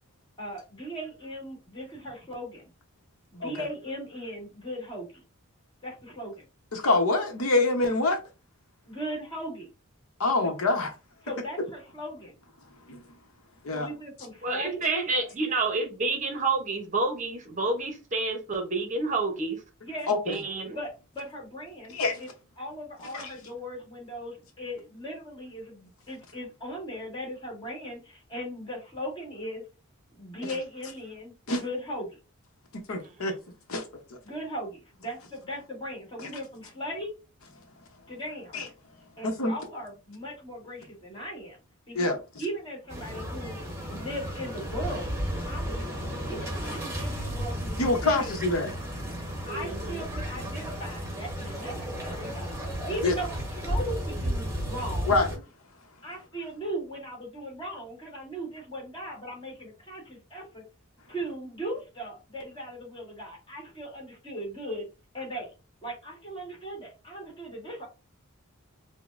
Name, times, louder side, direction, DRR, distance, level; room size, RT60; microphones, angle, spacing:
voice 1, 0.4-2.7 3.3-5.2 5.8-6.4 8.9-9.7 10.4-10.5 11.2-12.3 13.7-14.8 19.8-20.1 20.7-22.3 22.6-29.7 30.1-32.2 34.2-37.2 38.1-38.5 39.2-41.6 41.9-45.1 45.5-45.8 46.3-48.3 49.5-55.2 56.0-60.7 61.1-64.9 65.1-65.5 65.8-67.8, equal, 25° left, 1.7 m, -38 dB
voice 2, 6.7-8.2 10.2-10.9 12.9-13.0 13.6-13.9 14.9-15.0 20.1-20.4 21.9-22.2 23.1-23.3 30.4-30.5 31.5-31.6 32.9-33.3 33.7-33.8 36.2-36.3 38.5-38.7 39.2-39.5 41.9-42.1 47.8-48.7 53.0-53.1 55.1-55.3, left 2 dB, 70° left, 0.8 m, -25 dB
voice 3, 14.4-19.6 20.3-20.8 49.4-50.0, right 3 dB, 35° right, 0.7 m, -29 dB
sound 1, 42.9-55.4, equal, 15° right, 1.1 m, -33 dB
5.0 x 2.1 x 2.5 m
head